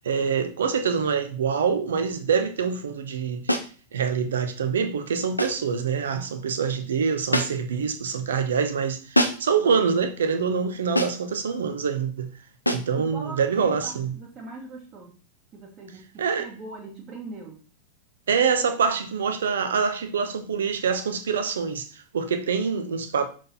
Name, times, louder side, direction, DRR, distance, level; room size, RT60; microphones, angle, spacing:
voice 1, 0.0-3.5 3.9-12.3 12.7-14.1 16.2-16.5 18.3-23.3, right 6 dB, 65° right, 1.0 m, -25 dB
sound 1, 3.5-3.8 5.4-5.7 7.3-7.8 9.1-9.6 11.0-11.3 12.7-13.0, equal, 85° left, 0.8 m, -25 dB
voice 2, 13.0-15.1 15.5-17.6, right 3 dB, 30° right, 1.5 m, -41 dB
6.6 x 4.6 x 4.1 m
figure-of-eight pair, 90°, 0 cm